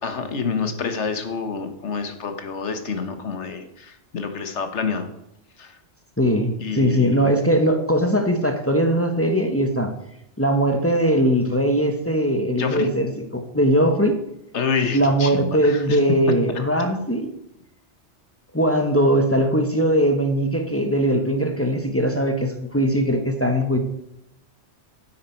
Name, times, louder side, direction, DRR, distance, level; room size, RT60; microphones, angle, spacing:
voice 1, 0.0-5.1 5.6-5.7 6.6-7.3 12.6-12.9 14.5-16.0, left 5 dB, 80° left, 8 dB, 1.5 m, -28 dB
voice 2, 6.2-9.9 10.4-14.2 14.9-17.3 18.5-23.8, equal, 15° left, 5 dB, 1.1 m, -20 dB
9.3 x 8.6 x 4.5 m, 0.80 s
omnidirectional pair, 1.2 m